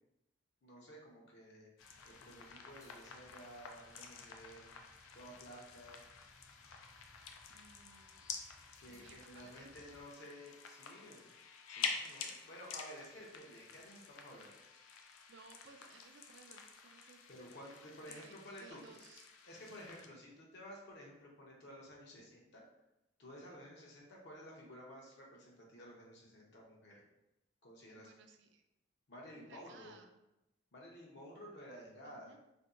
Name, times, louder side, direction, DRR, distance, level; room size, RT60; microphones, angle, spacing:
voice 1, 0.6-4.7 5.1-6.0 8.8-11.4 11.7-14.5 17.3-18.8 19.5-22.6 23.2-27.0 27.6-28.1 29.1-29.9 30.7-32.3, equal, 55° left, -2 dB, 0.7 m, -53 dB
sound 1, 1.8-20.1, left 6 dB, 85° left, 0.4 m, -49 dB
sound 2, 1.8-10.0, left 1 dB, 15° left, 0.3 m, -67 dB
voice 2, 7.5-8.4 8.9-9.7 14.8-17.2 18.1-19.3 27.9-28.6 29.4-30.2 32.0-32.4, right 4 dB, 60° right, 6 dB, 0.3 m, -60 dB
2.6 x 2.2 x 3.6 m, 0.90 s
head